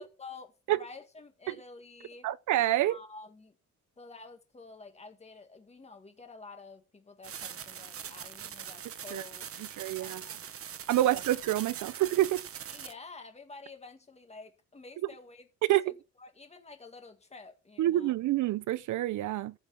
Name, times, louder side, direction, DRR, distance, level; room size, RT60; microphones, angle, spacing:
voice 1, 0.0-2.3 2.8-3.6 4.0-9.7 10.0-10.5 11.0-11.1 12.7-15.5 15.8-18.1, left 4 dB, 20° left, 2.0 m, -50 dB
voice 2, 2.2-3.0 9.1-9.2 9.8-10.2 10.9-12.4 15.7-15.9 17.8-19.5, right 14 dB, 70° right, 0.6 m, -27 dB
sound 1, 7.2-12.9, right 8 dB, 45° right, 1.0 m, -42 dB
15.0 x 5.2 x 5.8 m
cardioid pair, 145°, 31 cm